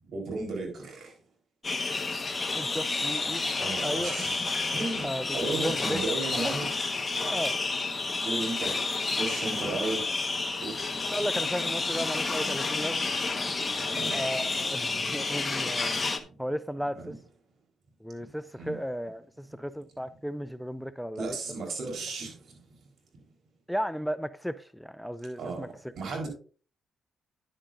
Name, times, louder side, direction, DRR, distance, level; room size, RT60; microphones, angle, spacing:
voice 1, 0.1-1.1 3.6-4.4 4.7-6.7 8.2-8.7 9.2-10.0 10.6-10.8 13.9-14.2 16.9-17.1 18.6-18.8 21.2-22.4 25.4-25.6 26.0-26.3, right 3 dB, 70° right, 4.1 m, -34 dB
sound 1, 1.6-16.2, left 3 dB, 35° left, 1.3 m, -30 dB
voice 2, 2.5-3.4 3.8-4.1 5.0-6.6 7.2-7.6 11.1-13.2 14.1-16.0 16.4-17.1 18.0-21.4 23.7-25.7, equal, ahead, 0.5 m, -34 dB
10.0 x 9.0 x 2.6 m
supercardioid pair, 50°, 0 cm